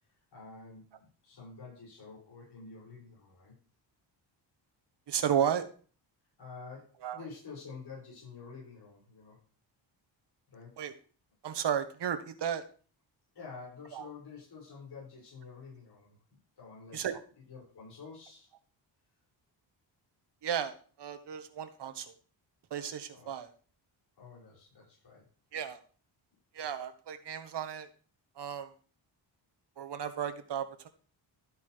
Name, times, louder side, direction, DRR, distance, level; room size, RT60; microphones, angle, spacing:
voice 1, 0.0-3.5 6.4-9.4 10.5-10.7 13.3-17.1 17.5-18.5 23.1-23.3 24.2-25.2, left 4 dB, 60° left, -4 dB, 6.5 m, -49 dB
voice 2, 5.1-5.6 7.0-7.2 10.8-10.9 11.4-12.6 13.9-14.0 16.9-17.2 20.4-22.1 22.7-23.5 25.5-25.8 26.5-27.9 28.4-28.7 29.8-30.9, right 9 dB, 65° right, 9 dB, 1.3 m, -34 dB
13.0 x 8.2 x 3.4 m, 0.40 s
wide cardioid pair, 130°, 45 cm